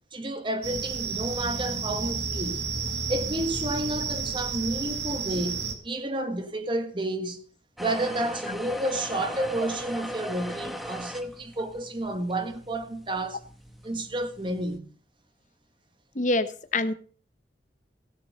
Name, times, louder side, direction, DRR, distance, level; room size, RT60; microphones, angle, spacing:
voice 1, 0.0-2.7 3.1-7.4 7.8-13.4 13.8-14.9, right 1 dB, 30° right, 1.5 m, -31 dB
sound 1, 0.6-5.7, right 5 dB, 75° right, 2.0 m, -31 dB
sound 2, 7.8-14.8, equal, ahead, 1.1 m, -39 dB
voice 2, 16.2-16.9, left 2 dB, 45° left, 1.1 m, -25 dB
16.5 x 7.4 x 6.5 m
head